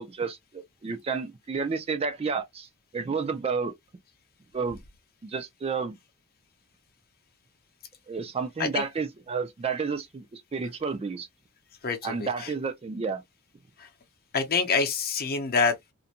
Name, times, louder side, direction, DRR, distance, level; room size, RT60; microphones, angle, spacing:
voice 1, 0.0-3.7 4.5-4.8 5.2-6.0 8.1-11.3 12.0-13.2, right 5 dB, 25° right, 0.4 m, -31 dB
voice 2, 11.8-12.3 13.8-13.9 14.3-15.7, left 5 dB, 45° left, 0.7 m, -26 dB
2.5 x 2.1 x 2.8 m
head